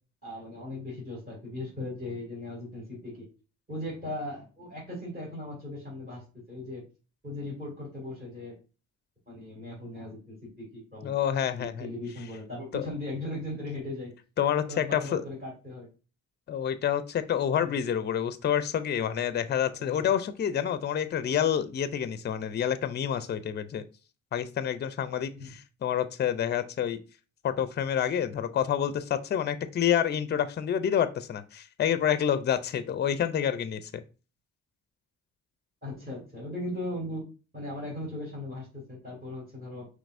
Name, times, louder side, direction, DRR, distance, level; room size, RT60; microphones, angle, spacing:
voice 1, 0.2-3.3 3.7-6.8 7.2-8.6 9.3-11.1 11.6-14.1 14.5-15.9 17.6-17.7 19.8-20.1 25.4-25.5 35.8-37.3 37.5-39.9, left 1 dB, 30° right, -5 dB, 2.3 m, -38 dB
voice 2, 11.0-11.9 12.7-12.8 14.4-15.2 16.5-23.8 24.3-27.0 27.4-34.0, left 9 dB, 35° left, 12 dB, 0.5 m, -28 dB
5.2 x 3.1 x 2.5 m, 0.33 s
cardioid pair, 90°, 30 cm